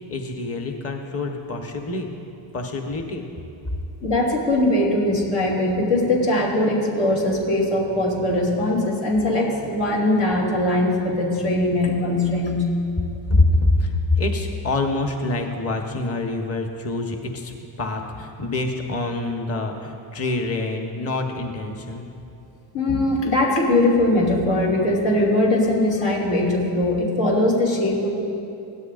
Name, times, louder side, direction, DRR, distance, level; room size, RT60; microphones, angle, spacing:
voice 1, 0.1-2.1 2.5-3.2 13.3-17.5 17.8-22.0, left 2 dB, 30° left, 3 dB, 1.3 m, -25 dB
voice 2, 4.0-12.7 22.7-28.1, left 1 dB, 70° left, -4 dB, 2.9 m, -21 dB
16.5 x 12.5 x 2.6 m, 2.9 s
supercardioid pair, 80°, 50 cm